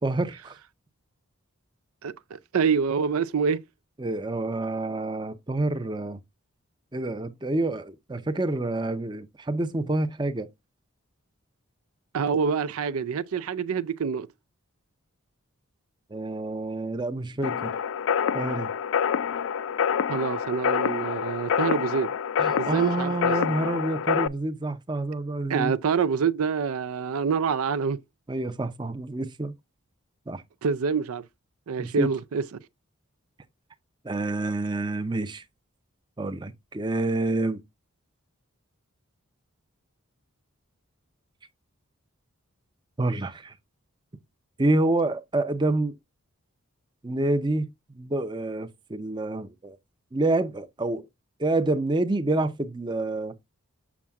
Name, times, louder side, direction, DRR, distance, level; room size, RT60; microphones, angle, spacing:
voice 1, 0.0-0.6 4.0-6.2 6.9-10.5 16.1-17.7 18.3-18.7 22.4-25.7 28.3-29.5 30.3-30.4 31.8-32.1 34.0-35.4 36.2-37.6 43.0-43.5 44.6-46.0 47.0-47.7 47.9-49.8 50.1-51.1 51.4-53.3, right 2 dB, 20° right, 0.5 m, -28 dB
voice 2, 2.0-3.6 12.1-14.3 20.1-22.1 22.6-23.3 25.5-28.0 30.6-31.2 31.7-32.4, right 6 dB, 80° right, 0.4 m, -26 dB
sound 1, 17.4-24.3, left 7 dB, 65° left, 0.3 m, -27 dB
7.1 x 6.2 x 2.3 m
head